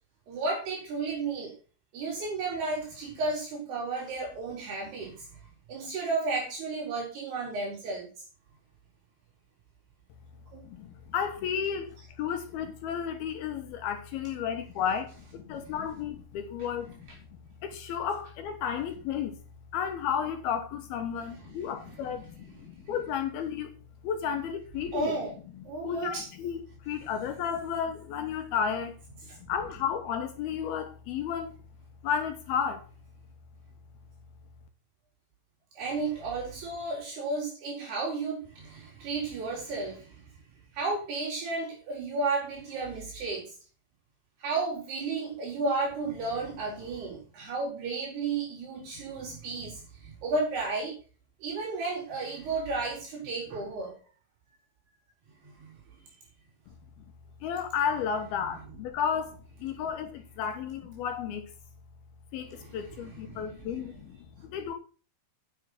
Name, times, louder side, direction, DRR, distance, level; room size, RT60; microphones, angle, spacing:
voice 1, 0.3-1.5 1.9-5.3 5.7-8.1 10.5-10.6 15.6-15.7 21.5-21.6 24.9-25.3 25.6-26.3 29.3-29.4 35.8-40.2 40.7-43.5 44.4-51.0 51.4-54.0 55.4-55.8 62.5-63.5, right 3 dB, 65° right, 6.3 m, -33 dB
voice 2, 10.6-17.1 17.6-19.4 19.7-23.7 24.0-25.2 25.6-29.0 29.4-31.5 32.0-32.9 57.4-61.5 62.3-64.2 64.4-64.7, left 7 dB, 70° left, 2.7 m, -33 dB
10.0 x 7.0 x 5.8 m
omnidirectional pair, 5.1 m